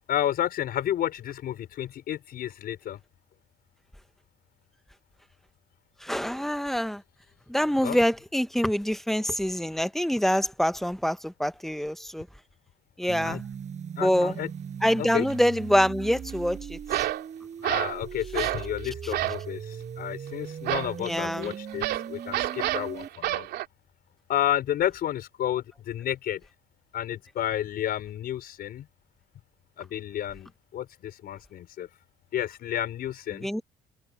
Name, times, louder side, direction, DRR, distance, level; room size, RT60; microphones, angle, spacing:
voice 1, 0.1-3.0 7.8-8.0 13.2-13.4 14.0-14.5 15.0-15.3 17.6-23.5 24.3-26.4 26.9-28.9 29.8-31.9 32.3-33.5, left 11 dB, 65° left, 5.2 m, -31 dB
voice 2, 6.0-7.0 7.5-12.3 13.0-13.4 14.0-14.4 14.8-16.8 18.4-18.5 21.0-21.5 33.4-33.6, equal, ahead, 1.1 m, -25 dB
sound 1, 13.1-23.1, right 7 dB, 45° right, 6.3 m, -39 dB
sound 2, 15.1-15.3 16.9-17.3 17.6-18.0 18.3-18.7 19.1-19.5 20.7-23.7, right 14 dB, 75° right, 3.3 m, -29 dB
cardioid pair, 110°, 17 cm